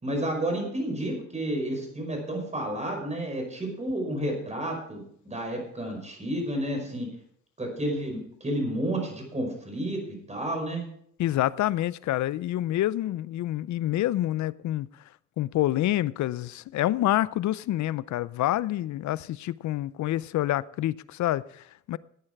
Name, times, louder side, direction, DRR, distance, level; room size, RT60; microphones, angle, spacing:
voice 1, 0.0-7.1 7.6-10.9, right 1 dB, 20° right, 5.2 m, -31 dB
voice 2, 11.2-14.9 15.4-22.0, left 14 dB, 70° left, 0.6 m, -27 dB
14.0 x 8.9 x 4.6 m
cardioid pair, 90°, 30 cm